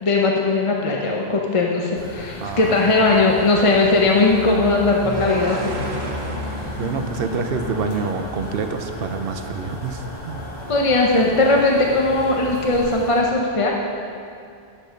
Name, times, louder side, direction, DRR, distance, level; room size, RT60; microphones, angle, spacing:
voice 1, 0.0-5.7 10.7-13.8, left 3 dB, 35° left, -1 dB, 0.8 m, -19 dB
sound 1, 1.9-13.2, left 1 dB, 60° left, 1.8 m, -33 dB
voice 2, 2.4-2.7 6.8-10.5, right 4 dB, 70° right, 6 dB, 0.8 m, -27 dB
sound 2, 5.0-8.2, right 2 dB, 90° right, 1.3 m, -32 dB
10.5 x 7.5 x 5.1 m, 2.4 s
omnidirectional pair, 1.1 m